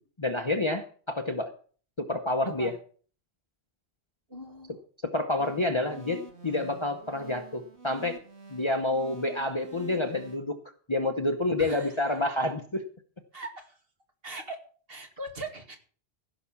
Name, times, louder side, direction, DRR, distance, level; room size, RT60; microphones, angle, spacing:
voice 1, 0.2-1.5 2.0-2.8 5.0-8.2 8.5-10.6 10.9-12.8, left 2 dB, 30° left, 6 dB, 0.9 m, -28 dB
voice 2, 4.3-4.7 5.9-6.0 11.6-11.9 13.3-13.7 14.2-14.6 14.9-15.8, right 2 dB, 60° right, 4 dB, 2.4 m, -40 dB
sound 1, 5.4-10.4, right 5 dB, 85° right, 2.6 m, -47 dB
15.5 x 6.1 x 7.1 m, 0.43 s
omnidirectional pair, 1.1 m